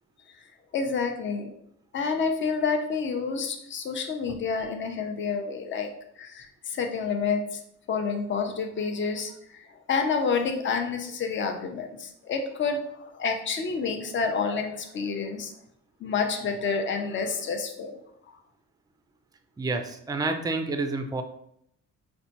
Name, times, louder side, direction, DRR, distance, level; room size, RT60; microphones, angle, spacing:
voice 1, 0.7-1.5 1.9-5.9 6.2-7.6 7.9-15.5 16.0-18.0 18.3-18.4, left 5 dB, 40° left, 4 dB, 0.6 m, -29 dB
voice 2, 19.6-21.2, right 3 dB, 15° right, 7 dB, 0.3 m, -29 dB
4.1 x 2.2 x 2.8 m, 0.72 s
cardioid pair, 90°, 30 cm